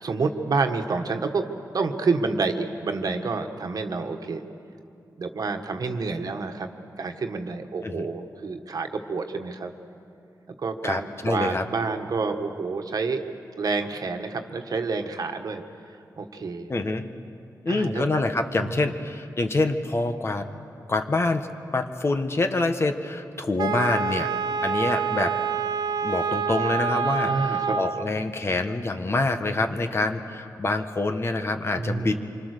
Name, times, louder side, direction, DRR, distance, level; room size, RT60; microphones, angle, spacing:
voice 1, 0.0-1.5 1.7-4.4 5.2-6.7 7.0-9.7 10.6-13.2 13.6-15.6 16.2-16.7 17.7-18.1 18.6-18.9 27.2-27.8 31.8-32.2, right 4 dB, 65° right, 5 dB, 1.5 m, -28 dB
voice 2, 10.8-11.6 16.7-17.1 17.6-20.5 20.9-21.5 21.7-24.3 24.6-25.4 26.0-32.2, left 2 dB, 35° left, 7 dB, 1.4 m, -26 dB
Wind instrument woodwind instrument, 23.6-28.1, right 6 dB, 80° right, 0.8 m, -27 dB
26.5 x 24.5 x 6.7 m, 2.6 s
wide cardioid pair, 95°, 7 cm